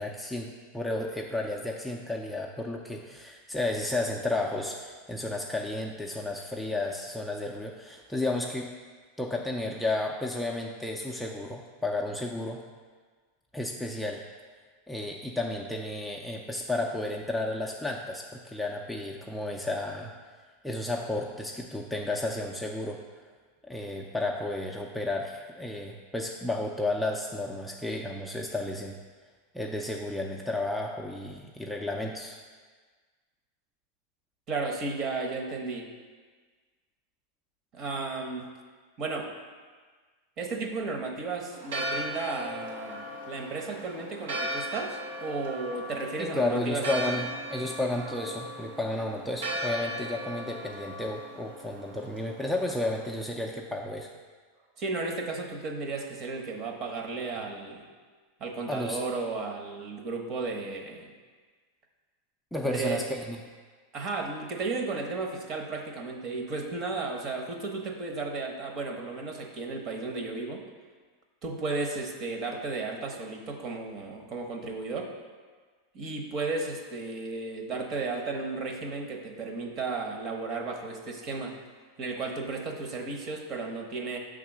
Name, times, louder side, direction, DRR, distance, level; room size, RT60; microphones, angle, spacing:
voice 1, 0.0-8.7 9.2-12.6 13.5-14.2 14.9-20.1 20.6-23.0 23.6-29.0 29.5-32.4 46.2-54.1 58.7-59.0 62.5-63.4, left 2 dB, 5° left, -1 dB, 0.4 m, -32 dB
voice 2, 34.5-35.9 37.7-38.5 39.0-39.3 40.4-47.2 54.8-57.9 58.4-61.1 62.6-63.0 63.9-70.7 71.4-75.1 75.9-81.6 82.0-84.2, right 3 dB, 35° right, 3 dB, 0.9 m, -34 dB
Church bell, 41.5-53.1, right 1 dB, 90° right, 1.1 m, -37 dB
5.9 x 3.7 x 6.0 m, 1.5 s
supercardioid pair, 135°, 0 cm